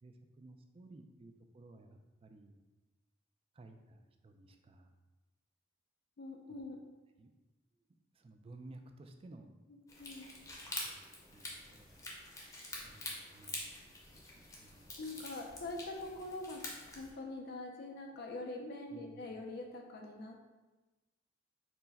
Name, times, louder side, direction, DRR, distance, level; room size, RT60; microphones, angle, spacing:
voice 1, 0.0-2.6 3.5-4.9 6.5-6.6 7.2-7.3 7.8-7.9 8.1-9.6 10.6-11.0 11.3-12.1 12.8-14.9 18.9-19.3, right 2 dB, 30° right, 5 dB, 0.3 m, -56 dB
voice 2, 6.2-6.8 10.0-10.3 15.0-16.6 16.9-20.4, left 2 dB, 55° left, 1 dB, 0.4 m, -44 dB
sound 1, 9.9-17.1, left 2 dB, 20° left, 0.7 m, -46 dB
4.5 x 2.1 x 4.0 m, 1.2 s
head